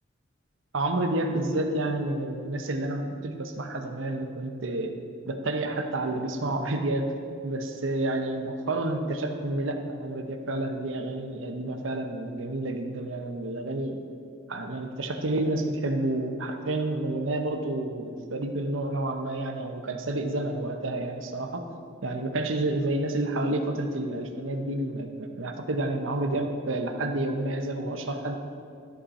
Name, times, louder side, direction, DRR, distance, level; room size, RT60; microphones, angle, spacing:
voice 1, 0.7-4.9 5.2-7.1 7.4-14.0 14.5-21.7 22.0-28.4, right 2 dB, 80° right, 6 dB, 0.8 m, -29 dB
13.0 x 5.6 x 4.2 m, 2.4 s
head